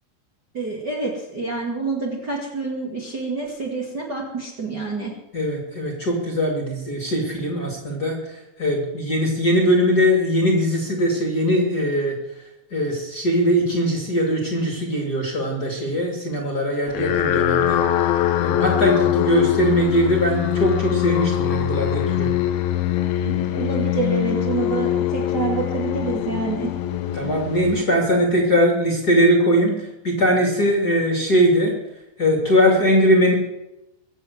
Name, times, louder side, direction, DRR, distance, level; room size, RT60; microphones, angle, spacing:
voice 1, 0.5-5.1 23.2-26.7, right 4 dB, 30° right, -2 dB, 2.2 m, -27 dB
voice 2, 5.3-12.2 12.7-17.8 18.4-22.3 27.1-31.7 32.2-33.3, equal, 30° left, 1 dB, 2.5 m, -20 dB
sound 1, 16.9-28.4, left 12 dB, 80° left, 1.7 m, -23 dB
23.0 x 7.8 x 8.0 m, 0.93 s
omnidirectional pair, 4.7 m